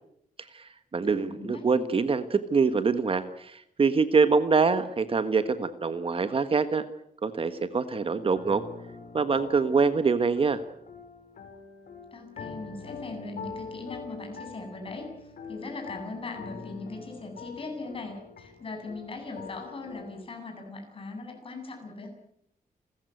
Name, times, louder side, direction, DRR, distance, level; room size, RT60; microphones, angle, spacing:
voice 1, 0.5-6.8 7.2-8.6 9.1-10.6, right 5 dB, 35° right, 10 dB, 1.5 m, -25 dB
voice 2, 1.2-1.6 12.1-22.1, left 3 dB, 35° left, 3 dB, 7.9 m, -40 dB
sound 1, 8.2-20.2, left 5 dB, 70° left, 6.8 m, -44 dB
29.5 x 14.5 x 9.5 m, 0.73 s
wide cardioid pair, 155°, 15 cm